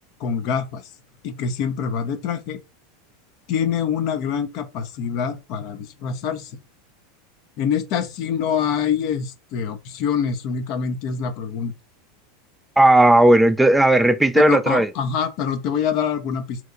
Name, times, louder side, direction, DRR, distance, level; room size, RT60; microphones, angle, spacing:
voice 1, 0.2-0.8 1.2-2.6 3.5-6.5 7.6-11.7 14.5-16.6, left 7 dB, 55° left, 0.5 m, -25 dB
voice 2, 12.8-14.9, right 1 dB, 5° right, 0.3 m, -15 dB
2.9 x 2.2 x 3.7 m
supercardioid pair, 120°, 0 cm